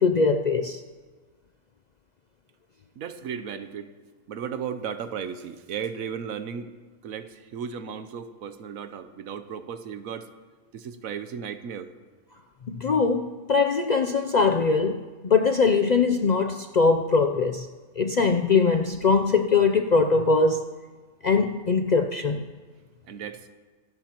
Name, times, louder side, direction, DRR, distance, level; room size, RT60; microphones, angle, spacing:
voice 1, 0.0-0.8 12.7-15.0 15.2-17.7 18.0-20.6 21.2-22.4, left 4 dB, 65° left, 6 dB, 0.4 m, -21 dB
voice 2, 3.0-3.9 4.3-6.7 7.0-10.3 10.7-11.9 23.1-23.5, right 7 dB, 80° right, 10 dB, 1.2 m, -35 dB
25.0 x 12.5 x 3.0 m, 1.4 s
omnidirectional pair, 1.4 m